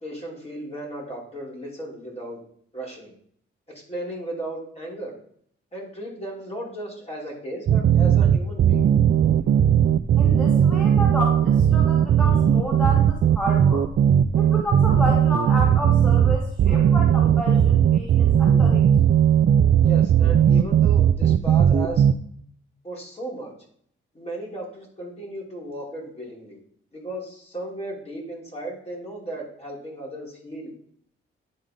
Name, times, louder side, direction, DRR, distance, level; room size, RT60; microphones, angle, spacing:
voice 1, 0.0-2.4 2.7-3.1 3.7-5.1 5.7-8.8 19.8-22.0 22.8-23.5 24.1-26.6 26.9-30.7, right 1 dB, 30° left, -4 dB, 3.0 m, -35 dB
sound 1, 7.7-22.1, right 9 dB, 55° right, 0.4 m, -18 dB
voice 2, 10.2-13.9 14.3-18.9, equal, 5° left, -5 dB, 2.1 m, -30 dB
10.0 x 3.8 x 3.7 m, 0.62 s
cardioid pair, 80°, 21 cm